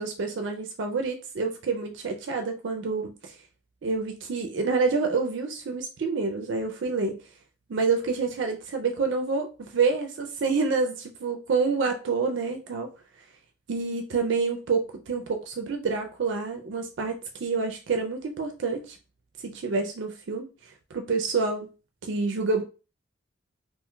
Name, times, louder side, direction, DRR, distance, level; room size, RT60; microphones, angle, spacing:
voice 1, 0.0-3.3 3.8-7.2 7.7-12.9 13.7-19.0 19.4-20.5 20.9-21.7 22.0-22.6, right 4 dB, 70° right, 4 dB, 0.4 m, -28 dB
2.4 x 2.2 x 3.7 m, 0.34 s
head